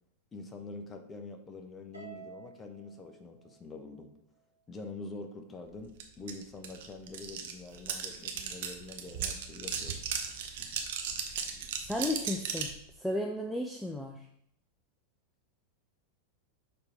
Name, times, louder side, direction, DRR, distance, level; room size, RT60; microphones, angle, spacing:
voice 1, 0.3-4.1 4.7-10.0, left 3 dB, 20° left, 5 dB, 0.9 m, -45 dB
Harp, 1.9-4.4, right 6 dB, 85° right, 1.4 m, -52 dB
sound 1, 6.0-6.1 6.3-12.8, right 7 dB, 55° right, 0.8 m, -36 dB
voice 2, 11.9-12.7 13.0-14.1, left 1 dB, 5° left, 1 dB, 0.5 m, -33 dB
6.8 x 4.1 x 3.5 m, 0.74 s
figure-of-eight pair, 90°, 0 cm